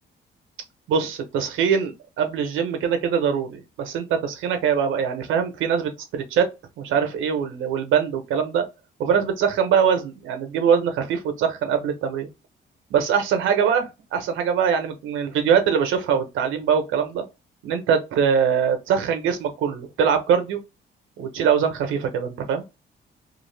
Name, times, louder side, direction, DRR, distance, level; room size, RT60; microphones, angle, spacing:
voice 1, 0.9-6.5 6.8-8.6 9.0-12.3 12.9-13.9 14.1-17.2 17.6-20.6 21.2-22.6, right 7 dB, 85° right, 0.8 m, -22 dB
2.6 x 2.4 x 3.2 m
cardioid pair, 90°, 20 cm